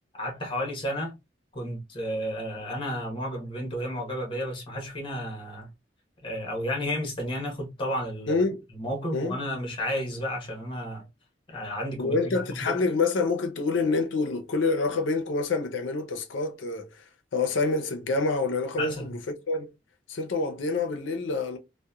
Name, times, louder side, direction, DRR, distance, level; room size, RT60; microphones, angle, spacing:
voice 1, 0.2-1.1 1.5-5.7 6.2-8.4 8.7-11.1 11.5-12.8 18.8-19.1, equal, 30° left, 0.9 m, -32 dB
voice 2, 8.3-8.6 9.1-9.4 12.0-17.0 17.3-19.2 19.5-19.7 20.1-21.6, left 3 dB, 90° left, 0.5 m, -27 dB
2.8 x 2.1 x 2.2 m
head